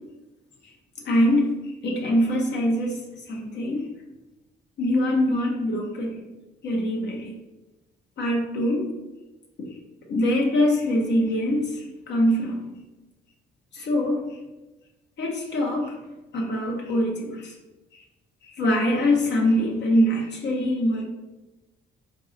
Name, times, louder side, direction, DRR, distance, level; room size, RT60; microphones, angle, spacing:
voice 1, 1.1-3.0 3.3-3.9 4.8-6.2 6.6-7.3 8.2-8.9 9.6-9.7 10.1-12.7 13.7-14.4 15.2-16.0 16.3-17.5 18.4-21.0, left 1 dB, 60° left, -1 dB, 0.7 m, -23 dB
4.0 x 2.6 x 2.5 m, 1.1 s
cardioid pair, 90°, 20 cm